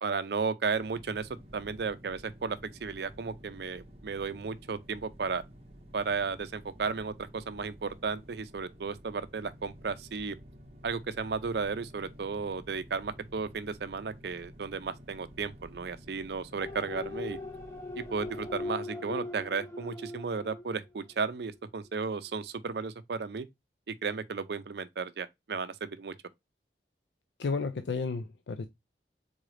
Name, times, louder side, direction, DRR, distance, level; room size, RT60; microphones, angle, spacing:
voice 1, 0.0-5.4 5.9-10.4 10.8-17.4 18.0-23.5 23.9-26.1, right 5 dB, 65° right, 0.5 m, -34 dB
sound 1, 0.7-18.7, equal, 35° right, 0.7 m, -52 dB
sound 2, 16.6-21.1 21.5-21.6, left 2 dB, 15° left, 0.7 m, -40 dB
voice 2, 27.4-28.7, left 4 dB, 80° left, 0.5 m, -32 dB
3.9 x 3.7 x 3.2 m
head